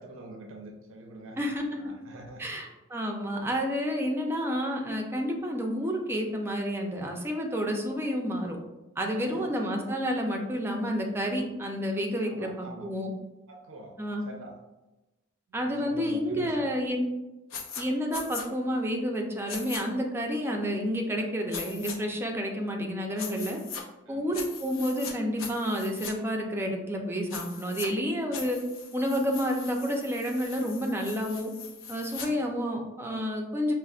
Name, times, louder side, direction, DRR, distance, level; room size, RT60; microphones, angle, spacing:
voice 1, 0.0-1.4 1.7-2.7 9.1-9.5 12.2-12.9 13.5-14.0 14.2-14.6 15.5-17.0 24.1-24.3 32.1-32.4, right 1 dB, 75° right, 1 dB, 0.5 m, -45 dB
voice 2, 2.4-8.6 9.0-13.1 14.0-14.2 15.5-17.1 17.8-23.6 24.1-28.6 28.9-31.5 31.9-33.7, equal, 10° right, 1 dB, 0.4 m, -30 dB
sound 1, 17.5-17.8 18.1-18.5 19.5-19.8 21.5-22.0 23.2-23.8 24.3-25.1 25.4-26.1 27.3-27.9 28.3-32.3, left 6 dB, 65° left, 0.5 m, -40 dB
5.3 x 2.0 x 2.4 m, 1.0 s
head